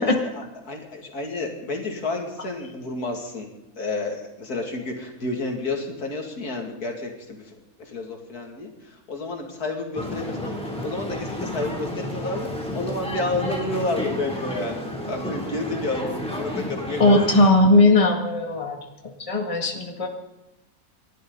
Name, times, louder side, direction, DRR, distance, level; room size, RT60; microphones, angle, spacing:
voice 1, 0.2-3.5 3.8-17.2, left 2 dB, 90° left, 2 dB, 2.8 m, -30 dB
sound 1, 9.9-17.5, equal, 5° left, 3.2 m, -31 dB
voice 2, 17.0-18.8 19.2-20.1, left 2 dB, 20° left, 3 dB, 1.9 m, -18 dB
29.0 x 12.0 x 4.0 m, 0.96 s
omnidirectional pair, 1.6 m